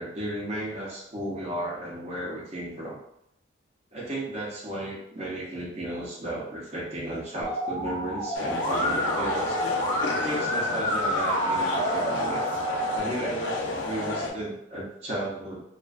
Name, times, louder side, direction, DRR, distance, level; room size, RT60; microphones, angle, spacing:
voice 1, 0.0-3.0 3.9-9.6 10.1-12.4 12.9-15.7, right 1 dB, 35° right, -4 dB, 0.6 m, -34 dB
Musical instrument, 7.4-13.0, equal, 20° left, 0.6 m, -28 dB
sound 1, 8.3-14.3, left 2 dB, 70° left, 0.4 m, -32 dB
2.4 x 2.3 x 2.3 m, 0.78 s
head